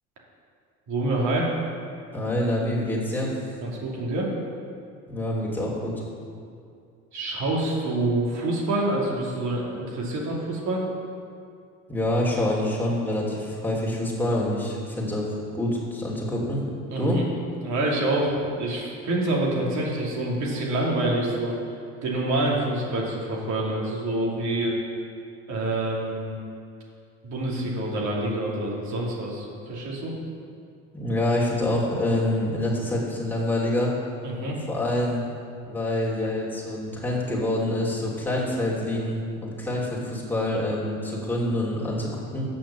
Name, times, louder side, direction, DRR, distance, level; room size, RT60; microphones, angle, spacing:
voice 1, 0.9-1.5 3.6-4.3 7.1-10.9 16.9-17.3 17.6-21.6 22.0-24.8 25.5-26.4 27.2-30.1 34.2-34.6, right 1 dB, 65° right, -3 dB, 2.6 m, -26 dB
voice 2, 2.1-3.3 5.1-5.9 11.9-16.6 17.0-17.2 30.9-33.9 34.7-35.2 35.7-42.5, left 1 dB, 5° left, -5 dB, 2.8 m, -26 dB
8.5 x 6.3 x 7.0 m, 2.4 s
supercardioid pair, 100°, 32 cm